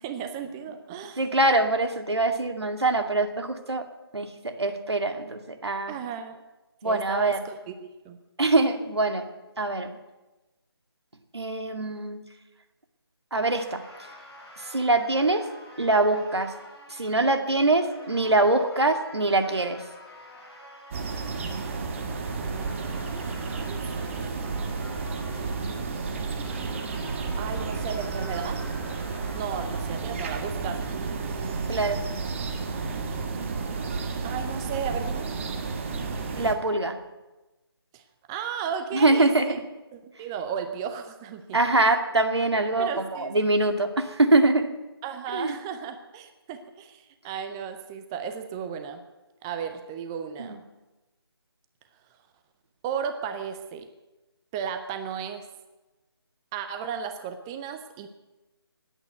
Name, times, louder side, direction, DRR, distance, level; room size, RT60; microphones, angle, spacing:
voice 1, 0.0-1.2 5.9-6.4 6.8-8.2 21.1-21.8 22.4-23.8 25.4-26.8 27.4-28.6 29.4-31.6 34.2-35.3 37.9-38.0 38.3-39.6 39.9-41.6 42.8-43.3 45.0-49.0 49.4-50.6 52.8-53.9 54.5-55.4 56.5-58.1, right 7 dB, 10° right, 7 dB, 0.5 m, -35 dB
voice 2, 1.2-3.8 4.1-5.9 6.8-7.4 8.4-9.3 9.6-10.0 11.3-12.2 13.3-13.8 14.6-15.4 15.8-16.5 16.9-19.8 31.7-32.0 36.4-37.0 38.9-39.6 41.5-44.7 45.3-45.6 50.4-50.6, right 2 dB, 80° right, 6 dB, 2.2 m, -23 dB
sound 1, 13.5-30.3, left 1 dB, 10° left, 6.8 m, -48 dB
sound 2, 20.9-36.5, right 4 dB, 30° right, 1.5 m, -32 dB
19.5 x 9.0 x 8.0 m, 1.1 s
figure-of-eight pair, 155°, 14 cm